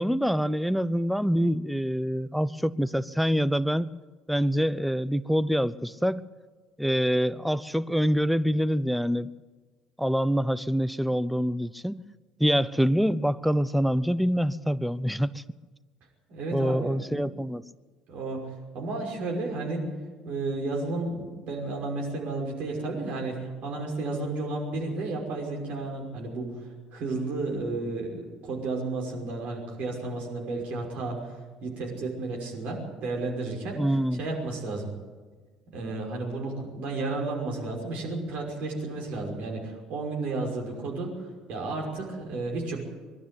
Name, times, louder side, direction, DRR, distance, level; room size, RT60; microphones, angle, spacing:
voice 1, 0.0-4.0 4.3-6.3 6.8-9.3 10.0-12.0 12.4-15.4 16.5-17.6 33.8-34.2, equal, ahead, 16 dB, 0.7 m, -25 dB
voice 2, 16.3-17.3 18.1-18.4 18.7-19.9 20.2-26.6 26.9-31.3 31.6-33.8 34.2-34.9 35.7-41.2 41.5-42.8, right 3 dB, 55° right, 1 dB, 5.8 m, -32 dB
22.5 x 12.0 x 9.9 m, 1.4 s
figure-of-eight pair, 60°, 3 cm